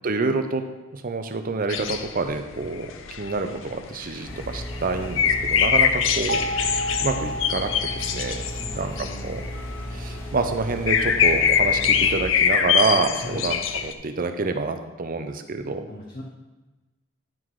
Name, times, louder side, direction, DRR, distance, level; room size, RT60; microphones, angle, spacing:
voice 1, 0.0-0.7 0.9-2.9 3.2-6.4 7.0-8.4 8.7-9.4 9.9-15.8, right 3 dB, 45° right, 7 dB, 0.7 m, -27 dB
sound 1, 1.7-13.9, left 7 dB, 70° left, 0.5 m, -24 dB
sound 2, 4.3-12.2, equal, 10° left, 1.9 m, -35 dB
Crystal glass, 6.3-9.2, right 1 dB, 80° right, 1.1 m, -32 dB
voice 2, 8.3-9.3 13.2-13.5 15.9-16.2, left 1 dB, 45° left, -2 dB, 1.0 m, -39 dB
10.5 x 3.8 x 4.7 m, 1.1 s
head